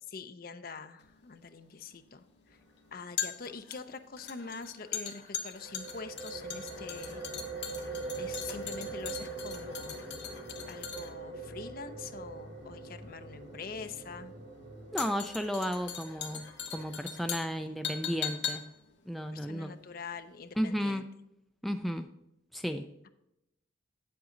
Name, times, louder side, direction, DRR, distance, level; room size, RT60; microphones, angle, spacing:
voice 1, 0.1-2.2 2.5-2.6 2.9-7.2 8.2-10.0 10.7-14.3 19.3-21.1, left 4 dB, 50° left, 9 dB, 0.6 m, -44 dB
sound 1, 1.0-20.3 20.6-20.7, left 8 dB, 65° left, 1.1 m, -41 dB
sound 2, 5.6-17.0, right 4 dB, 50° right, 3.6 m, -43 dB
sound 3, 8.0-15.1, equal, 90° right, 3.7 m, -52 dB
voice 2, 14.9-16.4 16.7-18.6 19.1-19.7 20.6-21.0 21.6-22.1 22.5-22.8, equal, ahead, 6 dB, 0.4 m, -33 dB
8.3 x 7.8 x 3.8 m, 0.84 s
head